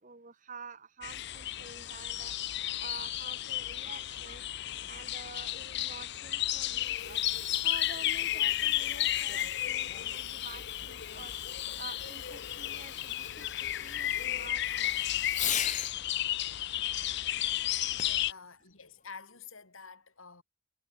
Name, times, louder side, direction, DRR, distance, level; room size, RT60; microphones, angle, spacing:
voice 1, 0.0-2.3 2.8-4.5 4.9-7.2 7.6-11.4 11.8-15.0, right 5 dB, 40° right, 1.4 m, -49 dB
sound 1, 1.0-18.3, left 13 dB, 55° left, 0.7 m, -33 dB
voice 2, 3.7-4.1 18.0-20.4, left 5 dB, 75° left, 4.1 m, -50 dB
Fireworks, 6.7-16.0 18.0-18.3 19.0-19.1, left 10 dB, 35° left, 1.4 m, -41 dB
head